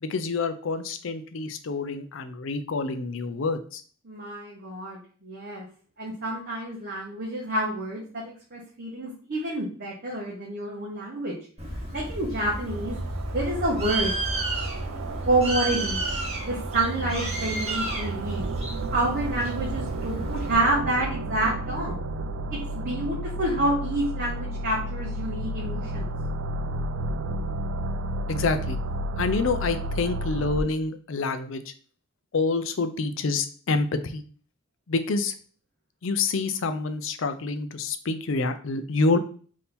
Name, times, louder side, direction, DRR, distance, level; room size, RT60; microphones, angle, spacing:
voice 1, 0.0-3.8 28.3-28.8 29.2-31.7 32.3-34.2 34.9-35.3 36.0-39.2, left 3 dB, 60° left, 9 dB, 0.5 m, -27 dB
voice 2, 4.0-5.6 6.0-11.4 11.9-13.0 13.3-14.2 15.2-16.0 16.4-18.5 18.9-22.0 22.5-26.1, right 1 dB, 45° right, -4 dB, 0.9 m, -28 dB
Bird, 11.6-20.5, right 1 dB, 30° right, 1.4 m, -32 dB
sound 1, 12.7-30.6, right 1 dB, 65° right, 0.3 m, -32 dB
3.5 x 2.7 x 4.3 m, 0.43 s
head